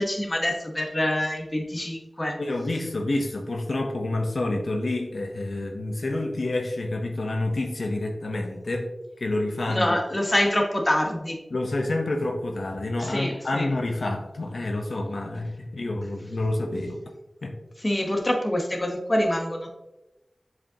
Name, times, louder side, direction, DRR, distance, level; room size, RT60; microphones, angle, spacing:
voice 1, 0.0-2.4 9.7-11.4 13.0-13.7 17.8-19.7, left 1 dB, 25° left, 2 dB, 1.1 m, -25 dB
voice 2, 2.4-8.9 9.2-10.0 11.5-17.0 17.4-17.5, left 2 dB, 70° left, 3 dB, 0.8 m, -28 dB
7.6 x 4.8 x 2.8 m, 0.98 s
wide cardioid pair, 70°, 0 cm